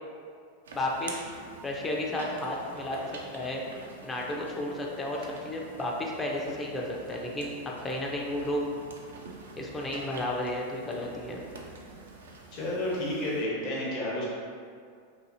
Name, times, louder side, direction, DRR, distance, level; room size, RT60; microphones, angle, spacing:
sound 1, 0.6-13.4, right 3 dB, 80° right, 0.4 m, -47 dB
voice 1, 0.7-1.2 1.6-3.0 3.3-8.7 9.6-11.4, left 1 dB, 20° left, -2 dB, 0.5 m, -33 dB
voice 2, 12.5-14.3, left 1 dB, 50° left, -5 dB, 0.9 m, -31 dB
2.8 x 2.6 x 2.6 m, 2.2 s
hypercardioid pair, 95°, 0 cm